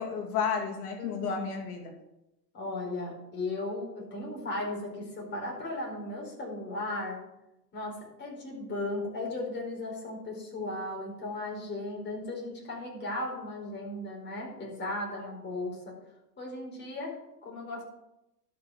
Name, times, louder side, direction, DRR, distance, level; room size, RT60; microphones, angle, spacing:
voice 1, 0.0-1.9 15.2-15.3, left 6 dB, 60° left, 2 dB, 2.5 m, -32 dB
voice 2, 1.0-1.4 2.5-7.3 7.7-16.0 16.4-17.8, left 2 dB, 20° left, -2 dB, 4.7 m, -36 dB
12.0 x 6.2 x 6.2 m, 0.89 s
hypercardioid pair, 115°, 49 cm